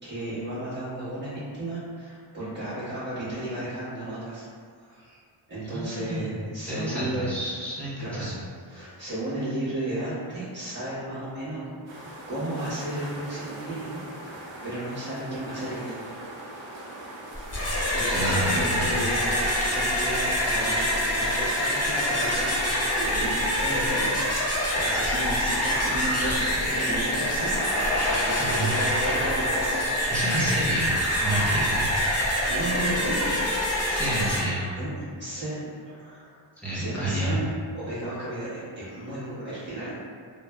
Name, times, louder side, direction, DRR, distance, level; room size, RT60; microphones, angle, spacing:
voice 1, 0.0-4.5 4.9-5.2 5.5-7.3 8.0-8.4 8.7-16.2 16.7-16.8 17.9-29.8 32.4-33.4 34.7-36.4 36.7-37.5 37.7-39.9, right 1 dB, 20° right, -12 dB, 1.3 m, -34 dB
voice 2, 5.6-6.3 6.7-8.3 18.1-19.1 28.4-28.7 30.1-30.9 31.2-31.9 33.9-34.7 36.6-37.4, right 1 dB, 5° left, -9 dB, 0.8 m, -29 dB
sound 1, 11.9-20.0, right 1 dB, 70° right, 0.6 m, -41 dB
sound 2, 17.4-34.4, equal, 30° left, 0.7 m, -25 dB
3.0 x 2.0 x 2.2 m, 2.1 s
wide cardioid pair, 70°, 49 cm